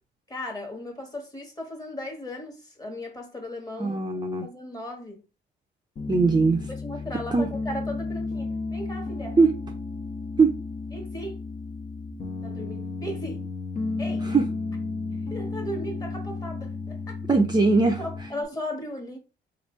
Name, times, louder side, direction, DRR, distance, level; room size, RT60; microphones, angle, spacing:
voice 1, 0.3-4.0 4.4-5.2 6.7-9.4 10.9-11.4 12.4-13.4 14.0-14.3 15.1-17.2 18.0-19.2, left 1 dB, 20° left, 1.4 m, -36 dB
voice 2, 3.8-4.4 6.1-6.7 7.3-7.5 9.4-9.5 10.4-10.5 14.3-14.5 17.3-18.0, right 4 dB, 20° right, 0.6 m, -20 dB
Piano, 6.0-18.4, left 3 dB, 40° left, 0.9 m, -33 dB
3.2 x 2.5 x 4.3 m
cardioid pair, 90°, 20 cm